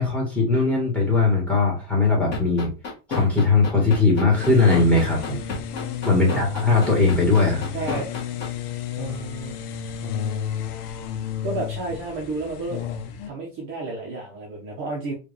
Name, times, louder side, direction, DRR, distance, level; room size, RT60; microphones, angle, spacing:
voice 1, 0.0-2.7 3.1-5.4 6.0-7.6, left 3 dB, 5° left, -2 dB, 1.3 m, -19 dB
sound 1, 2.3-8.5, left 3 dB, 20° left, 1.5 m, -29 dB
sound 2, 4.4-13.3, left 8 dB, 70° left, 0.8 m, -32 dB
voice 2, 6.1-6.5 7.7-8.1 9.0-9.6 11.4-12.8 13.2-15.1, right 3 dB, 25° right, -3 dB, 0.8 m, -31 dB
4.7 x 2.5 x 3.2 m, 0.31 s
supercardioid pair, 165°, 48 cm